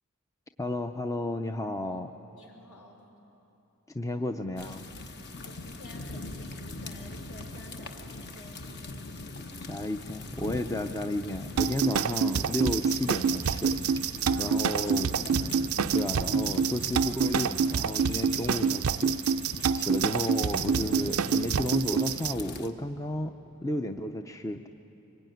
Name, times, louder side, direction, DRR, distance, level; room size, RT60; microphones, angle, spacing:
voice 1, 0.6-2.1 3.9-4.9 9.7-14.1 14.4-15.2 15.9-19.2 19.7-24.7, left 1 dB, 15° left, 7 dB, 0.6 m, -33 dB
voice 2, 2.3-3.0 5.4-9.1 14.3-15.0, equal, 70° left, 0 dB, 4.8 m, -52 dB
sound 1, 4.6-22.7, left 2 dB, 50° left, 1.2 m, -41 dB
sound 2, 11.6-22.3, right 6 dB, 65° right, 0.5 m, -27 dB
24.5 x 21.5 x 9.2 m, 3.0 s
head